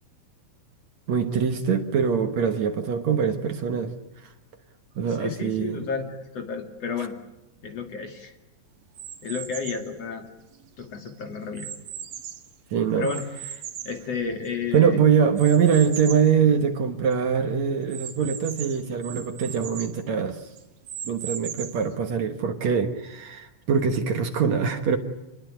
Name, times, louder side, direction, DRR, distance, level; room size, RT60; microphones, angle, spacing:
voice 1, 1.1-3.9 5.0-5.9 12.7-13.1 14.7-20.4 21.1-25.0, right 7 dB, 60° right, 7 dB, 2.4 m, -23 dB
voice 2, 5.1-7.1 7.6-8.3 9.2-10.2 10.8-11.7 12.9-13.2 13.8-15.0, left 5 dB, 50° left, 5 dB, 3.1 m, -31 dB
sound 1, 8.9-9.9 10.5-12.5 13.0-14.7 15.4-16.3 16.8-16.9 17.1-17.2 17.9-20.0 20.6-21.9, right 9 dB, 85° right, 3.5 m, -38 dB
28.0 x 20.5 x 9.2 m, 0.95 s
omnidirectional pair, 4.0 m